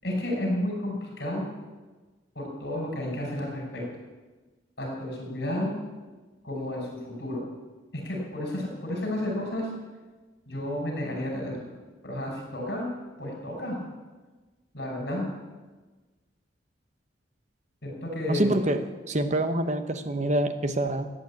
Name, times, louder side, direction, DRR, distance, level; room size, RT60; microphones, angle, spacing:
voice 1, 0.0-1.5 2.3-3.8 4.8-5.7 6.4-7.4 7.9-9.7 10.5-11.7 12.0-12.9 13.2-13.8 14.7-15.3 17.8-18.5, left 1 dB, 55° left, -1 dB, 5.9 m, -31 dB
voice 2, 18.3-21.1, right 1 dB, 35° right, 9 dB, 0.9 m, -26 dB
14.5 x 9.3 x 8.5 m, 1.3 s
head